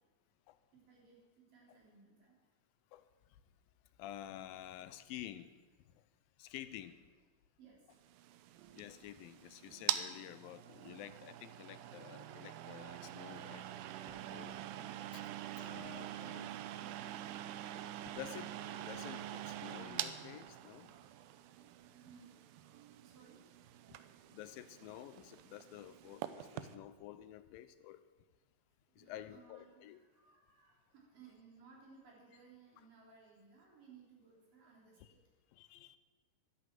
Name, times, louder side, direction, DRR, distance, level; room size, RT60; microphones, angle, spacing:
voice 1, 0.9-2.3 7.6-7.8 14.6-15.2 16.5-17.1 22.0-22.7 22.9-23.4 29.0-35.2, right 5 dB, 70° right, -3 dB, 5.2 m, -62 dB
voice 2, 4.0-5.5 6.4-7.0 8.8-14.6 15.1-15.2 15.5-16.5 18.2-18.5 18.8-20.9 24.3-28.0 29.0-30.0 35.5-36.0, left 12 dB, 85° left, 13 dB, 2.5 m, -50 dB
sound 1, 8.0-26.8, right 12 dB, 90° right, 2.5 m, -45 dB
12.5 x 11.5 x 7.6 m, 1.3 s
omnidirectional pair, 4.1 m